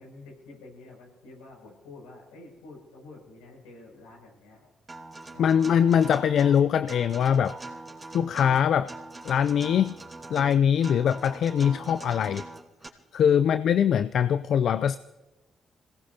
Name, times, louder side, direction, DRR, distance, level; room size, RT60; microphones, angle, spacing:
voice 1, 0.0-4.7 5.3-5.7 13.4-13.5, left 2 dB, 85° left, -2 dB, 6.8 m, -49 dB
Acoustic guitar, 4.9-12.9, right 2 dB, 25° right, 3.6 m, -42 dB
voice 2, 5.4-7.6 8.1-8.9 9.2-10.0 10.3-12.4 13.1-15.0, left 8 dB, 65° left, 14 dB, 0.4 m, -22 dB
27.0 x 18.5 x 2.8 m, 1.1 s
hypercardioid pair, 45°, 0 cm